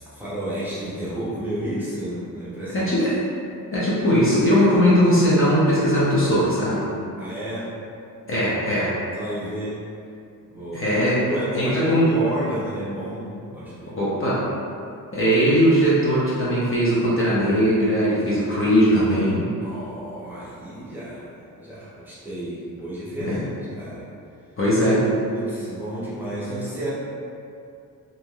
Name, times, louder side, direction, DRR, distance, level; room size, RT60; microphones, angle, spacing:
voice 1, 0.1-2.9 7.2-7.8 9.1-9.8 10.5-10.8 11.3-14.0 19.6-23.4 23.7-24.1 25.2-26.9, right 1 dB, 5° right, -11 dB, 0.6 m, -31 dB
voice 2, 2.7-3.1 3.7-6.9 8.3-8.9 10.7-11.3 11.5-12.1 13.9-14.4 15.1-19.4 23.3-23.4 24.6-25.1, equal, 35° left, -9 dB, 0.5 m, -19 dB
3.1 x 2.6 x 2.3 m, 2.5 s
wide cardioid pair, 155°, 36 cm